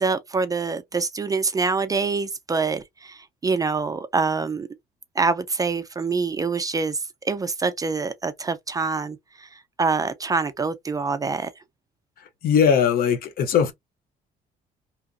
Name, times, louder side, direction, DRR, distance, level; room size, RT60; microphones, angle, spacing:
voice 1, 0.0-4.7 5.2-7.0 7.2-11.5, right 4 dB, 20° right, 0.3 m, -25 dB
voice 2, 12.4-13.7, left 7 dB, 60° left, 0.6 m, -19 dB
2.8 x 2.4 x 2.3 m
cardioid pair, 110°, 17 cm